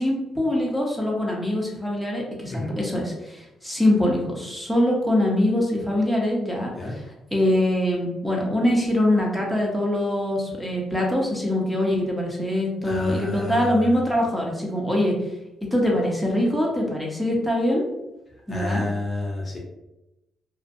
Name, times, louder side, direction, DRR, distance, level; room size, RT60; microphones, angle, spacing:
voice 1, 0.0-7.0 7.3-15.1 15.7-17.9 18.5-18.8, left 1 dB, 5° right, -2 dB, 0.6 m, -23 dB
voice 2, 12.8-13.5 18.5-19.6, left 2 dB, 35° left, -1 dB, 0.6 m, -29 dB
2.5 x 2.1 x 2.5 m, 0.93 s
cardioid pair, 90°, 0 cm